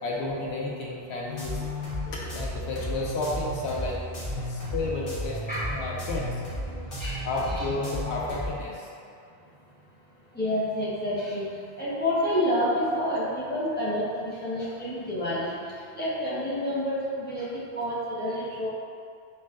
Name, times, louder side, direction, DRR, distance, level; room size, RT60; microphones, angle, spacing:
voice 1, 0.0-1.6 2.1-4.0 4.2-5.4 5.6-6.3 7.2-8.9, left 2 dB, 75° left, -3 dB, 1.0 m, -32 dB
sound 1, 1.3-8.5, left 1 dB, 55° left, 1.4 m, -34 dB
voice 2, 10.3-11.4 11.8-15.5 15.9-18.7, equal, 10° left, -10 dB, 1.0 m, -28 dB
4.4 x 4.1 x 2.5 m, 2.3 s
omnidirectional pair, 1.1 m